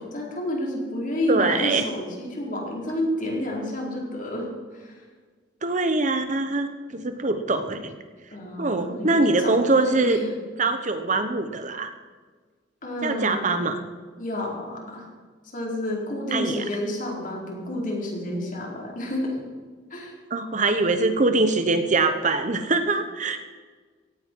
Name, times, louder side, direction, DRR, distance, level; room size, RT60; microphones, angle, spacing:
voice 1, 0.0-5.0 8.3-10.3 12.8-13.7 14.2-15.1 15.5-19.4 19.9-20.1, left 1 dB, 40° left, -1 dB, 4.2 m, -30 dB
voice 2, 1.3-1.9 5.6-8.0 8.6-10.2 10.6-11.9 13.0-13.8 16.3-16.6 20.3-23.4, right 3 dB, 40° right, 8 dB, 1.0 m, -23 dB
17.0 x 15.5 x 4.6 m, 1.5 s
head